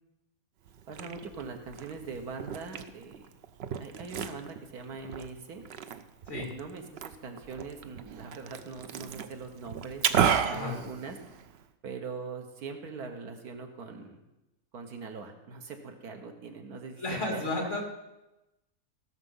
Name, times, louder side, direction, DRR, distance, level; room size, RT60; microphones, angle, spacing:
Liquid, 0.7-11.7, right 8 dB, 60° right, 0.7 m, -34 dB
voice 1, 0.9-3.3 3.8-5.6 6.4-11.2 11.8-14.2 14.7-17.7, right 4 dB, 85° right, 4 dB, 1.8 m, -42 dB
voice 2, 17.0-17.8, left 2 dB, 50° left, 0 dB, 2.7 m, -32 dB
15.5 x 6.8 x 5.5 m, 0.98 s
omnidirectional pair, 1.6 m